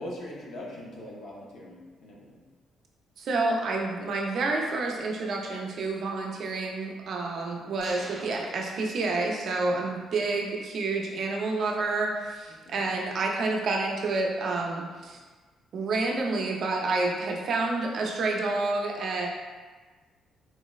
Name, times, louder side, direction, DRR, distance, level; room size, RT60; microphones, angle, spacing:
voice 1, 0.0-2.4 9.7-9.8 12.5-12.8 15.1-15.2, left 1 dB, 75° left, -3 dB, 0.6 m, -42 dB
voice 2, 3.2-15.2 15.7-19.3, right 3 dB, 65° right, 0 dB, 0.4 m, -29 dB
sound 1, 7.8-9.7, right 1 dB, 35° right, 0.9 m, -46 dB
3.9 x 2.0 x 2.3 m, 1.4 s
cardioid pair, 90°, 0 cm